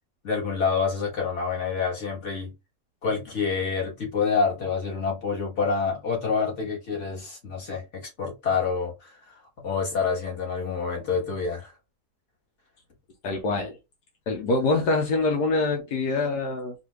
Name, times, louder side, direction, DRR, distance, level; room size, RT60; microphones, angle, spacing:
voice 1, 0.2-2.5 3.0-11.7, left 5 dB, 45° left, 2.0 m, -27 dB
voice 2, 13.2-13.8 14.3-16.7, left 3 dB, 80° left, 1.5 m, -25 dB
3.9 x 2.6 x 3.2 m
omnidirectional pair, 1.7 m